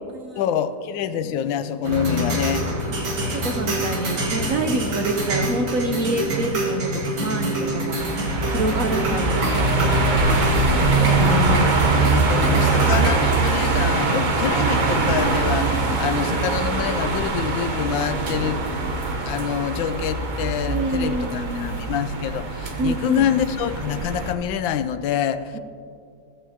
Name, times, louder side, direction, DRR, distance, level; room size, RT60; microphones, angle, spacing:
voice 1, 0.4-2.7 11.1-18.6 19.2-25.6, left 9 dB, 85° left, 12 dB, 1.3 m, -26 dB
Street action - dark thriller movie drone background, 1.8-13.1, equal, 85° right, 2.6 m, -26 dB
voice 2, 3.3-10.4 11.0-11.7 12.5-12.8 20.7-21.8 22.8-23.3 25.5-25.6, right 2 dB, 60° right, 4 dB, 0.9 m, -27 dB
sound 1, 8.0-24.3, right 3 dB, 40° right, 0.7 m, -22 dB
14.5 x 14.5 x 2.8 m, 2.5 s
omnidirectional pair, 2.0 m